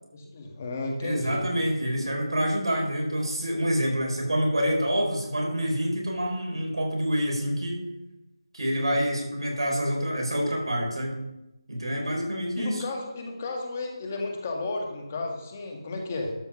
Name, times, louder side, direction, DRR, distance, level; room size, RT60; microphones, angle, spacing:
voice 1, 0.1-1.4 12.6-16.3, left 2 dB, 25° left, 1 dB, 1.6 m, -33 dB
voice 2, 1.0-7.8 8.5-11.2 11.7-12.8, equal, 90° right, 0 dB, 4.2 m, -27 dB
12.5 x 5.6 x 5.9 m, 0.94 s
figure-of-eight pair, 170°, 3 cm